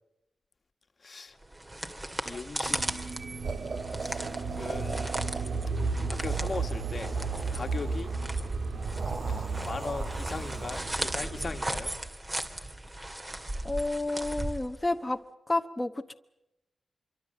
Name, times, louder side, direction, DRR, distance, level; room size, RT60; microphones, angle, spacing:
voice 1, 1.0-1.4 2.2-2.8 4.0-4.3 4.5-5.2 6.1-7.1 7.5-8.1 9.3-11.9, left 4 dB, 50° left, 1.7 m, -39 dB
sound 1, 1.4-15.1, right 1 dB, 25° right, 2.4 m, -37 dB
sound 2, 2.7-11.9, right 4 dB, 90° right, 1.8 m, -34 dB
sound 3, 3.4-5.7 6.0-8.2 8.7-11.0, right 4 dB, 60° right, 2.5 m, -39 dB
voice 2, 13.6-15.2 15.5-16.1, left 2 dB, 20° left, 1.1 m, -30 dB
25.5 x 24.0 x 7.8 m
wide cardioid pair, 80°, 0 cm